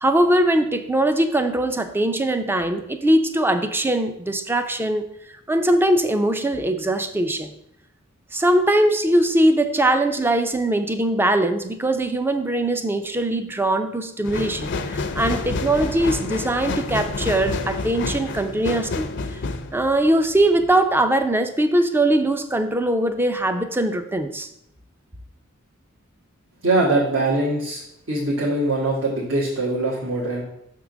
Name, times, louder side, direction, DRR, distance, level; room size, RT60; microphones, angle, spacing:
voice 1, 0.0-5.1 5.5-7.5 8.3-19.1 19.7-24.5, right 1 dB, 10° right, 8 dB, 0.5 m, -21 dB
sound 1, 14.2-20.8 21.2-21.3, left 3 dB, 60° left, 0.6 m, -29 dB
voice 2, 26.6-27.8 28.1-30.4, right 2 dB, 70° right, -6 dB, 1.6 m, -22 dB
6.4 x 3.7 x 6.0 m, 0.78 s
head